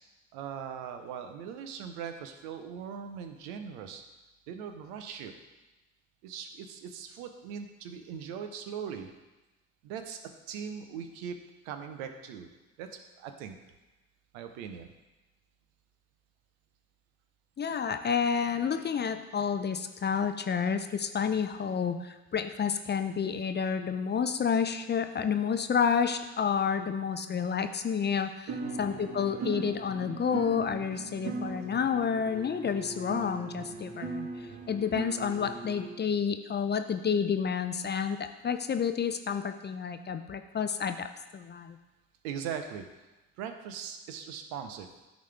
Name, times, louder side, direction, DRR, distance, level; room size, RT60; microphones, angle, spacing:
voice 1, 0.3-4.0 4.5-5.3 6.2-9.1 9.8-10.2 10.5-11.4 11.6-12.5 12.8-13.6 14.3-14.9 28.6-28.9 42.2-42.9 43.4-44.9, right 7 dB, 75° right, 7 dB, 0.8 m, -40 dB
voice 2, 17.6-34.3 34.7-41.8, left 7 dB, 25° left, 8 dB, 0.5 m, -30 dB
sound 1, 28.5-35.9, right 3 dB, 40° right, 1.5 m, -39 dB
10.5 x 4.1 x 3.3 m, 1.1 s
hypercardioid pair, 55°, 39 cm